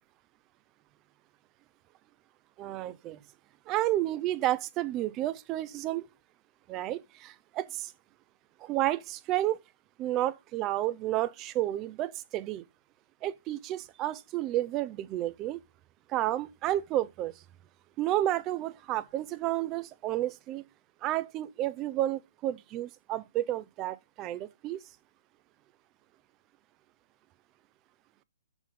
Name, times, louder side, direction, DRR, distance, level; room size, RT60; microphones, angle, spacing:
voice 1, 2.6-3.2 3.7-6.1 6.7-7.9 8.6-9.6 10.0-12.6 13.2-15.6 16.1-17.3 18.0-20.6 21.0-24.8, right 14 dB, 25° right, 0.6 m, -31 dB
7.0 x 5.7 x 5.3 m
hypercardioid pair, 130°, 0 cm